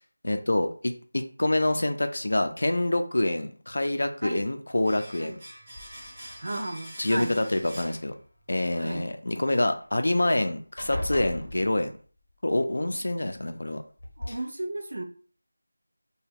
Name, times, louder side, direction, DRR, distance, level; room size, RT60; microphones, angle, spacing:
voice 1, 0.2-5.4 7.0-8.1 8.5-11.9 12.4-13.8 14.3-14.4, left 1 dB, 60° left, 7 dB, 0.4 m, -26 dB
Domestic sounds home sounds, 4.8-8.7 8.9-9.1, equal, 10° right, 0.7 m, -45 dB
sound 1, 5.8-6.3 7.2-8.0 9.8-9.9 10.2-10.4 10.8-12.2 13.3-13.4 14.0-14.3, left 1 dB, 35° left, 0.8 m, -38 dB
voice 2, 6.4-7.3 8.8-9.1 14.2-15.0, right 2 dB, 50° right, 4 dB, 0.5 m, -34 dB
2.8 x 2.2 x 3.5 m, 0.41 s
figure-of-eight pair, 180°, 0 cm